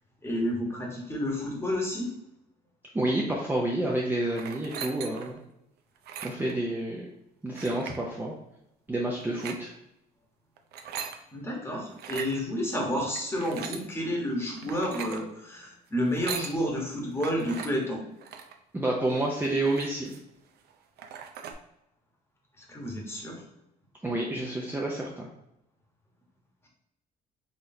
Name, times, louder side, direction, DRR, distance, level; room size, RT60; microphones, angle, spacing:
voice 1, 0.2-2.1 11.3-18.0 22.7-23.4, equal, 15° left, -1 dB, 1.1 m, -30 dB
voice 2, 2.9-5.3 6.2-7.1 7.4-8.3 8.9-9.7 18.7-20.1 24.0-25.3, right 1 dB, 10° right, -3 dB, 0.6 m, -29 dB
sound 1, 4.3-5.4 6.0-6.5 7.6-8.0 9.2-9.6 10.6-11.2 11.9-12.3 13.1-13.9 14.6-15.2 16.0-16.6 17.2-17.7 18.2-18.6 19.1-19.2 19.4-20.3 20.7-20.8 21.0-21.5, right 7 dB, 70° right, 0.5 m, -39 dB
4.0 x 3.1 x 2.7 m, 0.83 s
cardioid pair, 110°, 17 cm